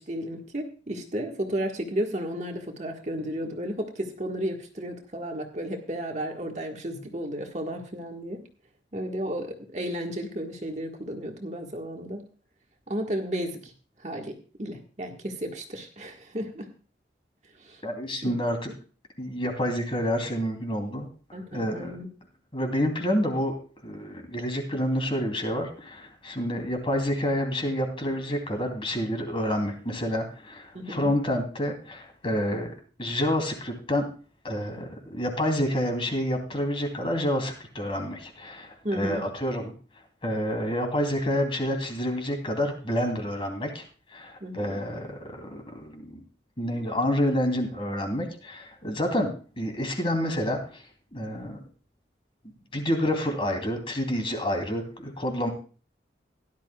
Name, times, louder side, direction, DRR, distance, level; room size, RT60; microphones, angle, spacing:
voice 1, 0.0-8.4 8.9-12.2 12.9-13.7 14.0-16.7 17.6-17.8 18.1-18.4 21.3-22.1 30.7-31.1 38.8-39.2 44.4-44.8, equal, 40° right, 3 dB, 1.6 m, -33 dB
voice 2, 17.8-18.7 19.2-21.1 21.5-22.0 22.5-23.5 23.8-32.7 33.0-34.0 34.4-39.7 40.2-43.8 44.1-46.2 46.6-49.3 49.6-50.8 51.1-51.6 52.7-55.5, equal, 30° left, 4 dB, 2.9 m, -28 dB
17.0 x 11.5 x 2.3 m, 0.37 s
head